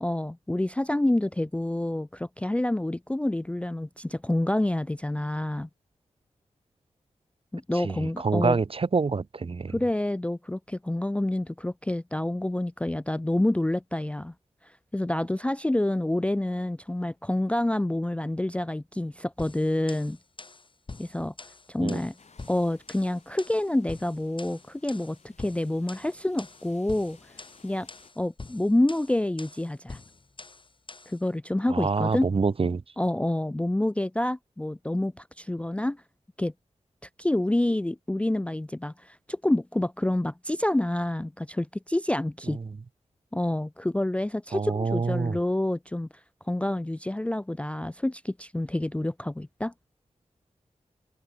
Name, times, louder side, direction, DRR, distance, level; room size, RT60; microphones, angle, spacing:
voice 1, 0.0-5.7 7.5-8.6 9.7-14.3 14.9-20.2 21.0-21.3 21.7-22.1 22.5-27.2 27.6-27.9 28.2-30.0 31.1-32.3 33.0-36.0 36.4-36.5 37.2-42.6 43.3-46.1 46.5-49.7, left 1 dB, 10° left, 0.3 m, -28 dB
voice 2, 7.8-9.7 21.8-22.0 31.7-32.8 44.5-45.4, right 4 dB, 45° right, 0.9 m, -26 dB
sound 1, 19.4-31.2, left 3 dB, 40° left, 2.7 m, -45 dB
sound 2, 22.2-28.1, left 4 dB, 65° left, 7.1 m, -59 dB
open air
cardioid pair, 60°, 13 cm